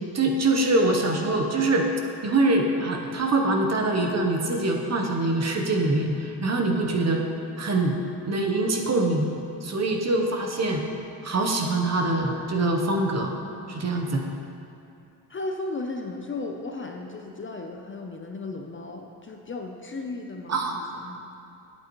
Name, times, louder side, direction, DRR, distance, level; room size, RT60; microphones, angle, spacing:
voice 1, 0.1-1.9 2.2-7.2 7.6-8.0 8.3-9.3 9.6-10.8 11.2-13.3 13.7-14.2 20.5-20.7, right 2 dB, 40° right, 2 dB, 0.9 m, -24 dB
voice 2, 15.3-21.3, left 2 dB, 30° left, 3 dB, 0.5 m, -35 dB
9.1 x 8.4 x 3.0 m, 2.6 s
cardioid pair, 100°, 42 cm